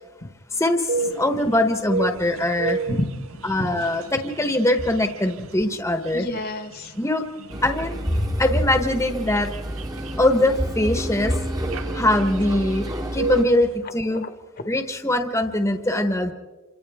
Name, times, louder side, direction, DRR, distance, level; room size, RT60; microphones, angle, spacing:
voice 1, 0.5-2.8 3.4-6.3 7.0-7.3 7.6-9.5 10.2-11.4 11.9-14.3 14.7-16.3, left 1 dB, 15° left, 6 dB, 1.1 m, -22 dB
sound 1, 0.9-13.7, right 3 dB, 60° right, 0.7 m, -33 dB
voice 2, 2.9-3.4 5.4-5.5 6.1-6.9 14.1-14.3 14.6-14.7, left 1 dB, 45° left, 9 dB, 1.2 m, -30 dB
sound 2, 7.5-13.5, right 1 dB, 15° right, 1.1 m, -31 dB
28.0 x 27.0 x 3.6 m, 1.3 s
head